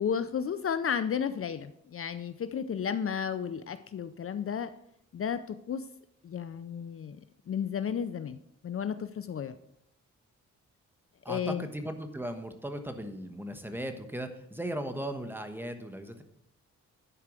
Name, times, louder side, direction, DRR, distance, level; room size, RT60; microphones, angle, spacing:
voice 1, 0.0-4.7 5.1-5.9 6.2-7.2 7.5-9.5 11.3-11.7, left 7 dB, 45° left, 11 dB, 0.5 m, -33 dB
voice 2, 11.2-16.2, right 1 dB, 5° right, 7 dB, 1.2 m, -37 dB
11.0 x 4.7 x 6.1 m, 0.76 s
cardioid pair, 85°, 30 cm